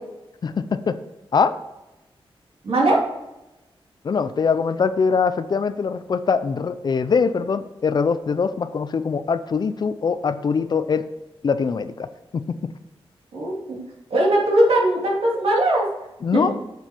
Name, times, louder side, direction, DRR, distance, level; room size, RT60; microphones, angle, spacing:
voice 1, 0.4-1.0 1.3-1.5 4.0-11.1 11.4-12.1 12.3-12.7 16.2-16.5, left 5 dB, 45° left, 12 dB, 0.5 m, -22 dB
voice 2, 2.6-3.0 13.3-13.8 14.1-15.9 16.3-16.4, right 1 dB, 90° right, -4 dB, 2.8 m, -19 dB
7.9 x 7.0 x 4.5 m, 0.98 s
wide cardioid pair, 180°, 10 cm